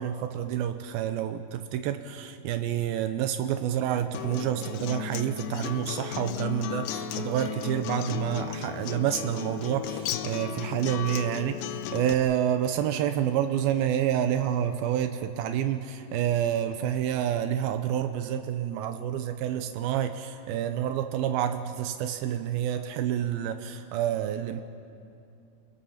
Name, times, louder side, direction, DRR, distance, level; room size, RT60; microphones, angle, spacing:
voice 1, 0.0-24.6, right 10 dB, 85° right, 8 dB, 2.6 m, -28 dB
Acoustic guitar, 4.1-12.1, left 10 dB, 90° left, 2.7 m, -35 dB
28.5 x 21.5 x 5.8 m, 2.6 s
omnidirectional pair, 4.2 m